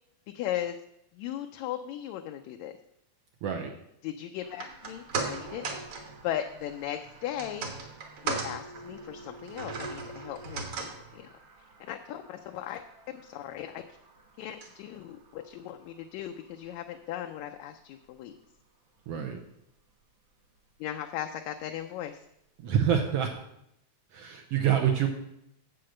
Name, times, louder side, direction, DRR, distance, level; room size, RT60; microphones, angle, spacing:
voice 1, 0.3-0.8 1.2-2.7 4.0-5.8 6.2-7.7 8.2-11.3 11.8-13.8 14.4-18.3 20.8-22.2, left 11 dB, 80° left, 5 dB, 1.8 m, -37 dB
voice 2, 3.4-3.7 19.1-19.4 22.6-23.3 24.1-25.1, right 9 dB, 75° right, 2 dB, 1.5 m, -26 dB
sound 1, 4.4-16.8 17.1-17.2, right 4 dB, 55° right, 2.0 m, -40 dB
7.7 x 7.7 x 6.4 m, 0.80 s
omnidirectional pair, 3.4 m